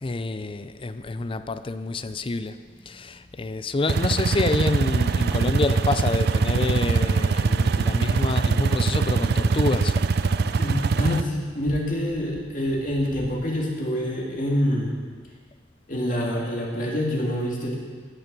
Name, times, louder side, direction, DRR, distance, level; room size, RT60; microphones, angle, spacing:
voice 1, 0.0-2.6 2.9-10.0, left 3 dB, 30° left, 0.5 m, -27 dB
sound 1, 3.9-11.2, right 4 dB, 55° right, 0.4 m, -22 dB
voice 2, 10.6-14.9 15.9-17.7, equal, 45° left, 2.4 m, -26 dB
17.5 x 6.7 x 6.1 m
head